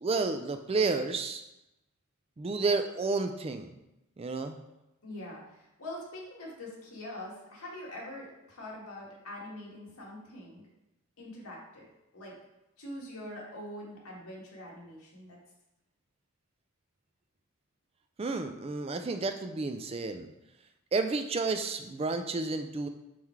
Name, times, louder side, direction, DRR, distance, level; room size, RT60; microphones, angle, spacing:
voice 1, 0.0-1.4 2.4-3.7 4.2-4.6 18.2-20.3 20.9-22.9, right 3 dB, 25° right, 7 dB, 0.3 m, -31 dB
voice 2, 5.0-10.7 11.2-11.9 12.1-12.4 12.8-15.4, left 1 dB, 80° left, -4 dB, 2.0 m, -44 dB
5.6 x 4.7 x 4.5 m, 0.92 s
head